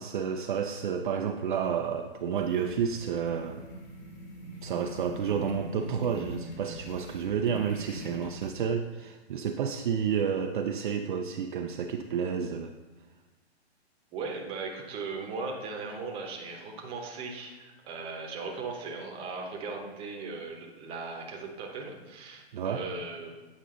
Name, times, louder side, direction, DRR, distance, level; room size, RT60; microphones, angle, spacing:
voice 1, 0.0-3.7 4.6-12.7 22.5-22.8, right 7 dB, 50° right, 4 dB, 0.5 m, -30 dB
sound 1, 2.3-8.5, right 1 dB, 30° left, 1.3 m, -43 dB
voice 2, 14.1-23.3, right 4 dB, 15° right, 0 dB, 0.9 m, -38 dB
8.5 x 5.2 x 3.8 m, 1.2 s
hypercardioid pair, 140°, 33 cm